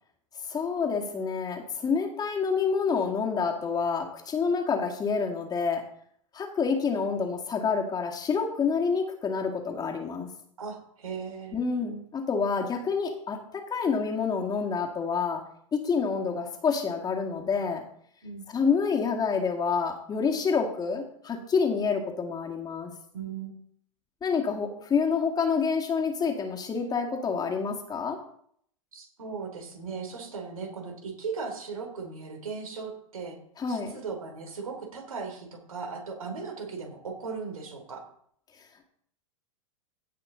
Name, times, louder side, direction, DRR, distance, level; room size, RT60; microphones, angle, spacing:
voice 1, 0.5-5.8 6.3-10.3 11.5-15.4 15.7-17.8 18.5-22.9 24.2-28.2 33.6-33.9, left 5 dB, 20° left, 2 dB, 2.1 m, -28 dB
voice 2, 10.6-11.6 18.2-18.5 23.1-23.5 28.9-33.4 33.7-38.0, right 5 dB, 80° right, 3 dB, 3.1 m, -37 dB
16.5 x 5.8 x 3.9 m, 0.65 s
hypercardioid pair, 100°, 18 cm